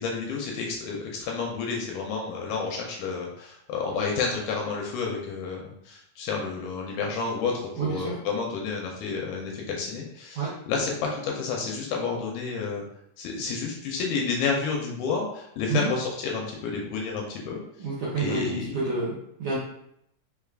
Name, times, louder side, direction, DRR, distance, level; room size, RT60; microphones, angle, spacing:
voice 1, 0.0-12.8 13.2-17.6 18.2-18.8, left 5 dB, 80° left, -1 dB, 2.0 m, -30 dB
voice 2, 7.8-8.2 10.3-10.5 15.7-15.9 17.8-19.6, right 4 dB, 70° right, -7 dB, 1.4 m, -29 dB
5.0 x 3.4 x 2.4 m, 0.75 s
omnidirectional pair, 3.9 m